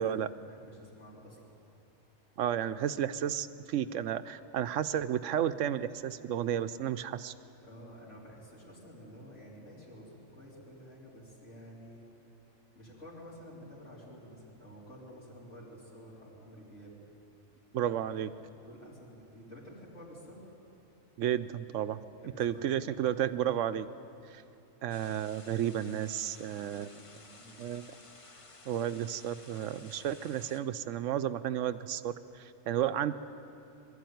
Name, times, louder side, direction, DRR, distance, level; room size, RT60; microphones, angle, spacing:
voice 1, 0.0-1.8 7.6-12.1 12.7-17.0 17.8-18.3 18.6-20.4 22.2-23.0 27.2-27.7, equal, 65° left, -7 dB, 4.4 m, -51 dB
voice 2, 2.4-7.3 17.7-18.3 21.2-22.0 22.4-23.9 24.3-24.4 24.8-26.9 27.6-27.9 28.7-33.1, right 10 dB, 70° right, 13 dB, 1.0 m, -32 dB
sound 1, 24.9-30.6, left 2 dB, 25° left, 1.0 m, -54 dB
22.5 x 12.5 x 9.3 m, 2.7 s
omnidirectional pair, 1.4 m